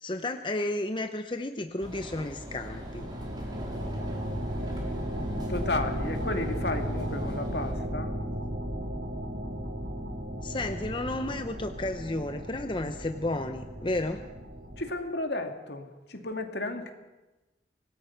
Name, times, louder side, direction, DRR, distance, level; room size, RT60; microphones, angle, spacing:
voice 1, 0.0-3.1 10.4-14.2, left 2 dB, 30° left, 7 dB, 0.8 m, -32 dB
sound 1, 1.8-7.7, equal, 25° right, 3.8 m, -43 dB
sound 2, 2.2-14.9, equal, 60° right, 2.5 m, -35 dB
voice 2, 5.5-8.1 14.8-16.9, left 2 dB, 70° left, 5 dB, 2.3 m, -33 dB
25.5 x 18.5 x 5.9 m, 1.1 s
head